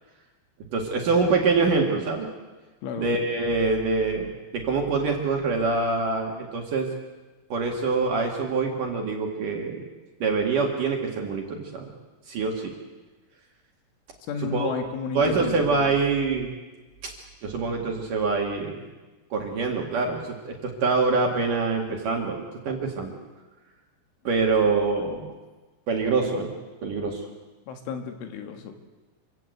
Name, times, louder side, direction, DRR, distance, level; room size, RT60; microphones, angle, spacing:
voice 1, 0.7-2.3 3.0-6.9 7.5-9.9 10.2-11.9 12.3-12.7 14.4-14.7 15.1-16.5 17.4-18.8 19.3-23.1 24.2-25.3 25.9-26.5 26.8-27.2, right 4 dB, 50° right, 1 dB, 3.0 m, -25 dB
voice 2, 14.3-15.6 27.7-28.8, left 6 dB, 75° left, 5 dB, 4.1 m, -32 dB
26.5 x 16.5 x 8.0 m, 1.2 s
omnidirectional pair, 5.8 m